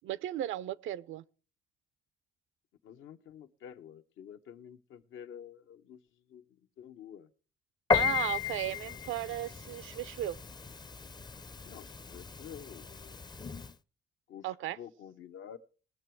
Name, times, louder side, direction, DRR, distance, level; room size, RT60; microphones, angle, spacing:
voice 1, 0.0-1.2 7.9-10.4 14.4-14.8, right 13 dB, 80° right, 0.6 m, -35 dB
voice 2, 2.8-6.0 6.3-6.4 6.8-7.3 11.6-13.2 14.3-15.6, left 9 dB, 80° left, 0.9 m, -49 dB
Piano, 7.9-13.7, left 6 dB, 20° left, 0.5 m, -35 dB
20.0 x 6.9 x 4.5 m
cardioid pair, 90°, 20 cm